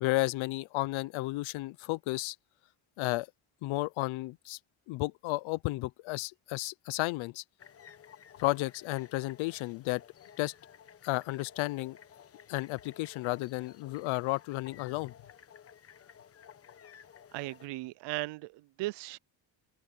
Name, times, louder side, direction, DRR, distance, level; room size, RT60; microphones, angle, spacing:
voice 1, 0.0-2.4 3.0-3.3 3.6-4.6 4.9-7.4 8.4-10.0 10.4-10.5 11.0-12.0 12.5-15.1, left 20 dB, 75° left, 0.8 m, -33 dB
sound 1, 7.6-17.7, left 8 dB, 30° left, 1.2 m, -55 dB
voice 2, 17.3-19.2, right 20 dB, 60° right, 0.5 m, -37 dB
cardioid pair, 160°, 47 cm